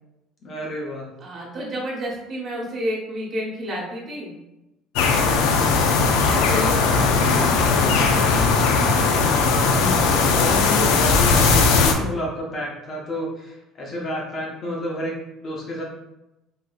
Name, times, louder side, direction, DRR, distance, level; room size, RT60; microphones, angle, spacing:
voice 1, 0.4-1.1 5.8-6.3 9.6-15.8, equal, 30° left, -2 dB, 0.7 m, -30 dB
voice 2, 1.2-4.3 5.1-5.7 6.2-8.5, equal, 30° right, -4 dB, 1.1 m, -31 dB
sound 1, 5.0-11.9, left 4 dB, 75° left, 0.4 m, -18 dB
3.6 x 2.7 x 2.4 m, 0.94 s
cardioid pair, 155°, 0 cm